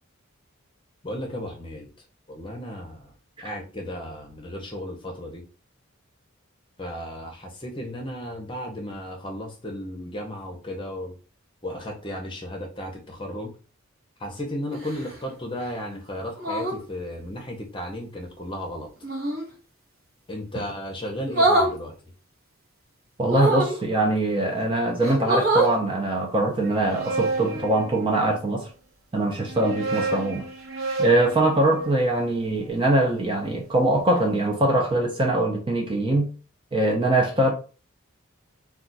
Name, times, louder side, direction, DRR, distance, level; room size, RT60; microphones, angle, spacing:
voice 1, 1.0-1.9 2.3-3.1 3.4-5.4 6.8-11.1 11.6-13.5 14.2-18.9 20.3-22.0, equal, 25° left, 0.7 m, -34 dB
sound 1, 14.7-15.2 16.4-16.8 19.0-19.5 21.3-21.7 23.2-23.8 24.5-24.6 25.0-25.8 27.4-27.6, right 2 dB, 45° right, 1.1 m, -24 dB
voice 2, 23.2-28.7 29.1-30.4 31.0-36.3 36.7-37.5, right 1 dB, 25° right, 0.5 m, -22 dB
sound 2, 26.6-28.5 29.3-33.5, right 3 dB, 65° right, 0.7 m, -32 dB
2.4 x 2.3 x 3.9 m
head